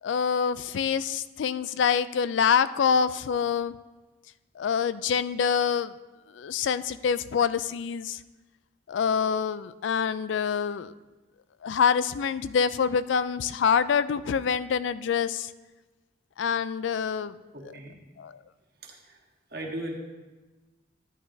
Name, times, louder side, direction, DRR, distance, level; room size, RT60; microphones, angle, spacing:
voice 1, 0.0-3.7 4.6-5.9 6.3-8.2 8.9-10.9 11.6-15.5 16.4-17.4 18.2-18.3, left 6 dB, 85° left, 15 dB, 0.3 m, -26 dB
voice 2, 17.5-18.0 18.8-19.2 19.5-20.0, right 1 dB, 55° right, 0 dB, 1.4 m, -37 dB
11.5 x 10.0 x 2.7 m, 1.2 s
head